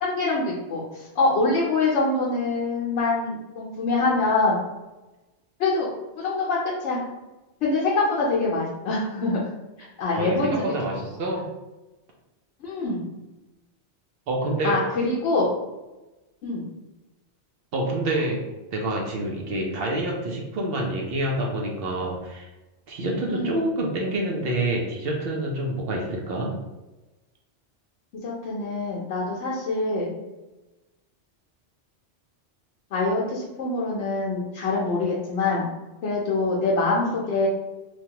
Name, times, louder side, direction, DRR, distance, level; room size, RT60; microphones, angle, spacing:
voice 1, 0.0-4.6 5.6-5.9 6.2-7.0 7.6-9.5 9.8-10.7 12.6-13.1 14.6-15.5 16.4-16.6 23.3-23.7 28.1-30.1 32.9-35.6 36.0-37.5, left 3 dB, 80° left, -5 dB, 0.9 m, -25 dB
voice 2, 10.1-11.5 14.3-14.8 17.7-18.4 18.7-22.5 22.9-26.5, right 1 dB, 65° right, -1 dB, 0.7 m, -27 dB
3.1 x 2.2 x 2.8 m, 1.1 s
omnidirectional pair, 1.2 m